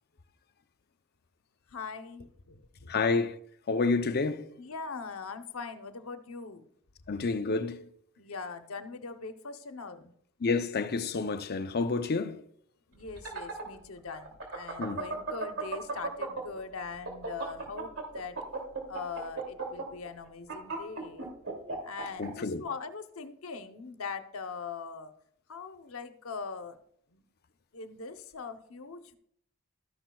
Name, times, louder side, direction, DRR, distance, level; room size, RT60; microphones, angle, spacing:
voice 1, 1.7-3.0 4.6-6.7 8.2-10.1 12.9-18.4 18.9-21.3 21.8-25.1 25.5-26.8 27.1-27.2 27.7-29.2, left 4 dB, 85° left, 0.9 m, -41 dB
voice 2, 2.9-3.4 3.7-4.5 7.1-7.9 10.4-12.4 14.8-15.0 22.2-22.6, left 4 dB, 50° left, 0.6 m, -29 dB
sound 1, 13.0-16.6 16.9-22.3, right 4 dB, 70° right, 2.6 m, -35 dB
13.0 x 10.0 x 2.3 m
head